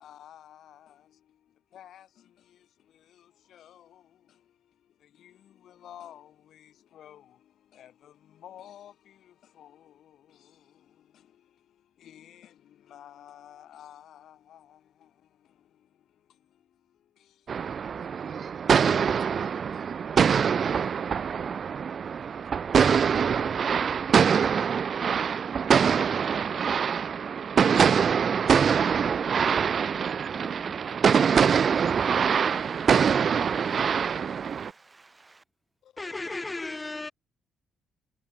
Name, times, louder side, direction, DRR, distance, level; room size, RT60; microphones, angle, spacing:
voice 1, 0.0-21.7 22.4-23.4 24.4-24.9 33.4-34.0 35.8-36.6, left 11 dB, 70° left, 4.0 m, -54 dB
sound 1, 17.5-34.7, right 7 dB, 50° right, 0.3 m, -24 dB
voice 2, 30.3-35.4, right 3 dB, 25° right, 0.9 m, -52 dB
voice 3, 36.0-37.1, left 2 dB, 20° left, 0.9 m, -34 dB
cardioid pair, 90°, 0 cm